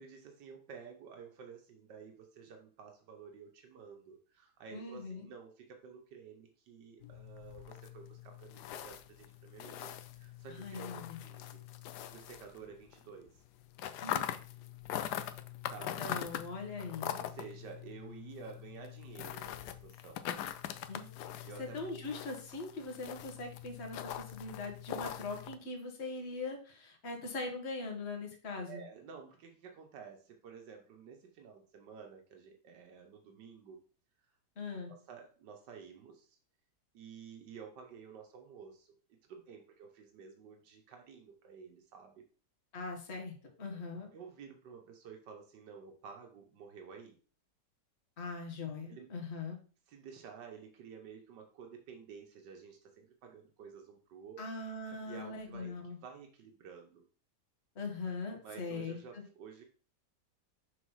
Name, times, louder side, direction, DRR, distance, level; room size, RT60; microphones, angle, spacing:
voice 1, 0.0-11.6 12.1-13.4 15.7-16.1 17.1-20.2 21.4-21.8 28.7-33.8 34.9-36.4 36.9-38.9 39.3-42.2 44.1-47.2 48.9-49.1 49.9-54.4 55.0-57.0 58.4-59.6, right 6 dB, 85° right, 3 dB, 1.6 m, -51 dB
voice 2, 4.7-5.3 10.5-11.2 14.0-14.2 16.0-17.2 20.9-21.1 21.6-28.8 34.6-34.9 42.7-44.1 48.2-49.6 54.4-56.0 57.7-59.2, left 3 dB, 40° left, 2 dB, 1.7 m, -41 dB
sound 1, 7.0-13.0 13.3-25.6, left 11 dB, 75° left, 1.2 m, -42 dB
6.4 x 4.1 x 5.5 m, 0.40 s
omnidirectional pair, 1.8 m